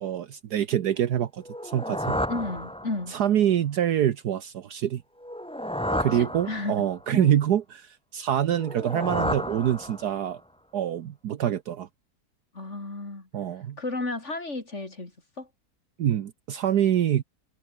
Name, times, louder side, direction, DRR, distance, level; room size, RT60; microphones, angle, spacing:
voice 1, 0.0-2.2 3.1-5.0 6.0-10.4 10.7-11.9 13.3-13.8 16.0-17.2, right 10 dB, 70° right, 1.5 m, -25 dB
sound 1, 1.4-3.3 5.2-7.0 8.5-10.4, equal, 5° left, 2.5 m, -32 dB
voice 2, 2.3-3.2 5.9-6.7 7.1-7.3 12.5-13.3 13.8-15.1 15.4-15.5, left 2 dB, 40° left, 4.0 m, -33 dB
omnidirectional pair, 1.8 m